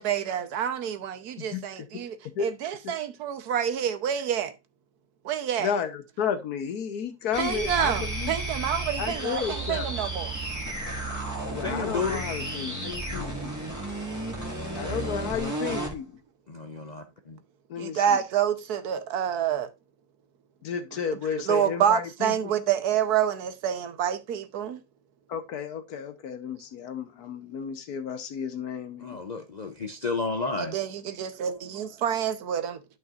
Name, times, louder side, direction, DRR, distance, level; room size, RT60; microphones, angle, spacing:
voice 1, 0.0-4.5 5.2-5.7 7.4-10.4 17.8-19.7 21.5-24.8 30.6-32.8, right 9 dB, 85° right, 1.4 m, -28 dB
voice 2, 5.6-8.3 9.0-10.0 11.5-13.5 14.7-16.2 17.7-18.2 20.6-22.5 25.3-29.2, left 7 dB, 80° left, 1.5 m, -32 dB
sound 1, 7.3-16.0, right 2 dB, 10° right, 1.8 m, -33 dB
voice 3, 11.6-12.2 16.5-17.4 29.0-30.8, left 3 dB, 55° left, 0.4 m, -32 dB
12.0 x 5.4 x 2.4 m
omnidirectional pair, 1.6 m